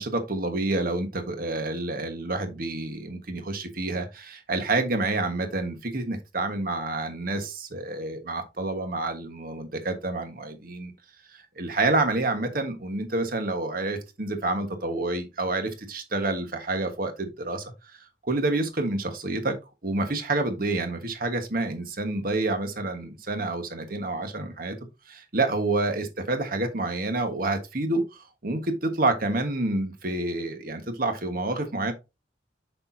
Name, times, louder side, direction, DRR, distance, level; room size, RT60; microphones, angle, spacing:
voice 1, 0.0-10.9 11.3-19.6 19.8-24.8 25.1-31.9, right 2 dB, 50° right, 1.3 m, -28 dB
6.7 x 5.9 x 2.7 m
head